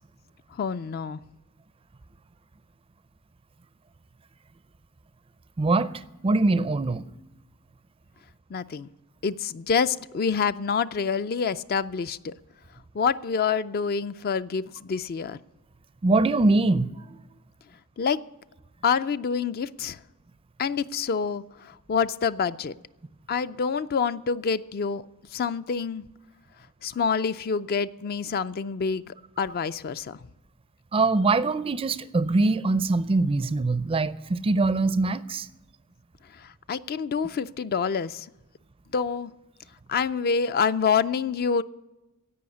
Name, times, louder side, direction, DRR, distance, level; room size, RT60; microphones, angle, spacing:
voice 1, 0.6-1.2 8.5-8.9 9.2-12.3 12.9-15.4 18.0-18.2 18.8-20.0 20.6-22.7 23.3-25.0 25.3-26.0 26.8-30.2 36.4-38.3 38.9-39.3 39.9-41.6, left 6 dB, 45° left, 0.4 m, -27 dB
voice 2, 5.6-7.0 16.0-16.9 30.9-35.5, right 3 dB, 25° right, 0.4 m, -23 dB
16.0 x 5.6 x 9.6 m
head